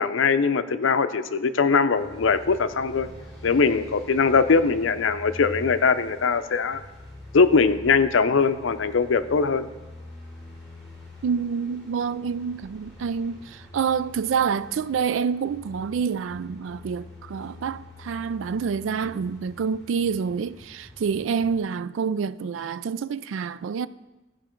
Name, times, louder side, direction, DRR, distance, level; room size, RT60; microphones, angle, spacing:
voice 1, 0.0-3.1 3.4-6.8 7.3-9.7, left 5 dB, 90° left, 0.5 m, -21 dB
sound 1, 1.9-21.6, left 1 dB, ahead, 4.0 m, -45 dB
voice 2, 11.2-23.9, right 6 dB, 85° right, 0.4 m, -27 dB
15.0 x 5.1 x 4.5 m
head